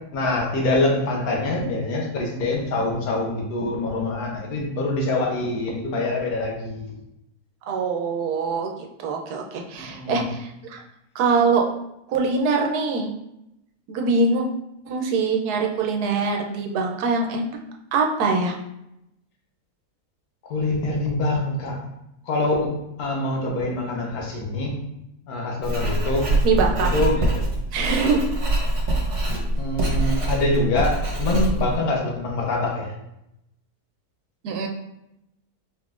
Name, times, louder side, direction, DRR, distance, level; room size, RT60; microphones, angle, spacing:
voice 1, 0.1-6.9 9.8-10.3 20.5-21.8 22.3-22.7 23.0-24.7 25.3-26.3 26.8-27.3 29.6-32.9, left 2 dB, 75° left, -1 dB, 1.4 m, -25 dB
voice 2, 7.7-10.8 11.1-11.7 12.1-13.1 13.9-14.5 14.9-17.5 17.9-18.5 26.4-26.9 27.7-28.2 34.4-34.7, right 4 dB, 85° right, 2 dB, 1.2 m, -23 dB
Writing, 25.6-31.7, right 1 dB, 55° right, 1.2 m, -24 dB
4.5 x 3.6 x 2.4 m, 0.85 s
omnidirectional pair, 1.6 m